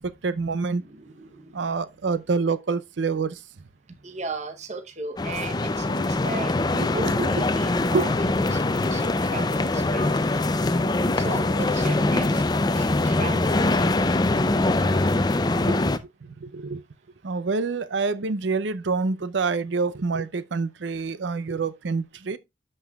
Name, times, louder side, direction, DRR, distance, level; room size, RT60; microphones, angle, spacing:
voice 1, 0.0-0.8 1.5-3.4 6.8-7.3 7.9-8.1 15.7-15.8 16.2-16.8 17.2-22.4, right 4 dB, 75° right, 0.6 m, -27 dB
voice 2, 0.8-1.8 4.0-10.3 11.2-12.4 12.7-14.0, right 3 dB, 40° right, 0.8 m, -37 dB
sound 1, 5.2-16.0, left 2 dB, 20° left, 0.4 m, -23 dB
11.5 x 5.4 x 2.3 m
head